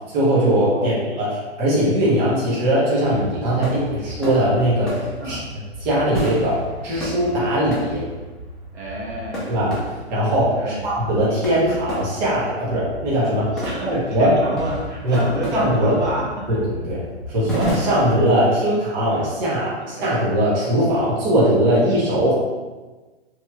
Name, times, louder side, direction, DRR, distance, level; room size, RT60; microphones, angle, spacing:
voice 1, 0.1-5.4 5.8-8.0 9.5-9.7 10.1-13.5 13.9-14.4 15.0-15.2 15.5-15.9 16.5-17.0 17.3-22.3, right 1 dB, 45° right, -8 dB, 1.2 m, -20 dB
sound 1, 3.0-18.3, equal, ahead, 0.5 m, -32 dB
voice 2, 8.7-9.6 10.6-10.9 13.5-16.6 19.8-20.1, right 1 dB, 80° right, -4 dB, 1.2 m, -29 dB
3.1 x 2.8 x 2.4 m, 1.2 s
hypercardioid pair, 135°, 33 cm